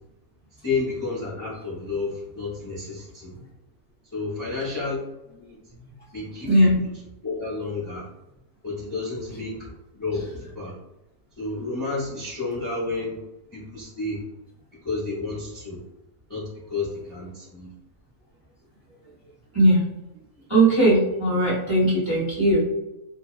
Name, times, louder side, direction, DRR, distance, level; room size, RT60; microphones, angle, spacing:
voice 1, 0.6-3.4 4.1-5.6 6.1-6.7 7.2-8.1 8.6-10.8 11.4-13.2 13.5-14.2 14.7-15.8 16.3-17.7, left 3 dB, 25° left, -9 dB, 0.4 m, -31 dB
voice 2, 6.4-6.8 19.5-19.8 20.5-22.6, right 1 dB, 30° right, -9 dB, 0.6 m, -19 dB
2.7 x 2.0 x 2.3 m, 0.94 s
omnidirectional pair, 1.6 m